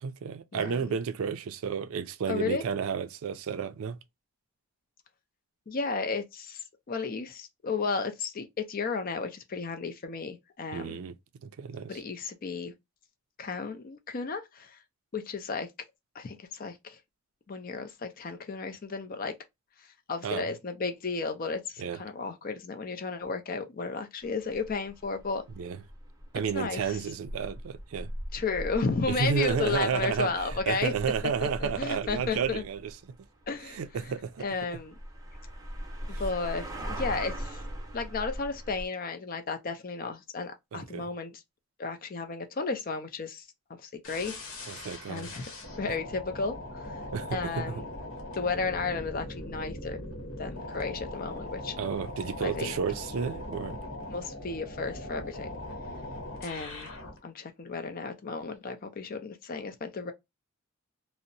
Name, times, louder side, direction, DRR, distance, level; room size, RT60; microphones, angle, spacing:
voice 1, 0.0-4.0 10.7-11.1 11.4-12.0 20.2-20.5 21.8-22.0 25.6-25.8 26.3-28.1 29.1-32.9 33.6-34.4 36.1-36.2 40.7-41.1 44.7-45.3 47.1-47.8 51.8-53.8, right 6 dB, 75° right, 0.4 m, -32 dB
voice 2, 0.5-0.9 2.3-2.6 5.7-11.0 11.9-12.7 13.4-14.8 15.1-15.7 16.1-17.0 17.5-19.3 20.1-25.4 26.5-27.0 28.3-30.9 31.4-32.6 33.5-33.8 34.4-34.9 36.2-37.6 37.9-41.4 41.8-44.8 45.1-45.5 45.8-46.9 47.3-47.8 48.3-50.0 50.4-51.8 52.4-52.8 54.1-55.5 56.4-56.9 57.2-60.1, left 4 dB, 40° left, 0.4 m, -33 dB
sound 1, 24.2-38.9, equal, 15° right, 0.7 m, -41 dB
sound 2, 44.0-57.2, left 1 dB, 65° left, 0.9 m, -40 dB
2.7 x 2.0 x 2.5 m
head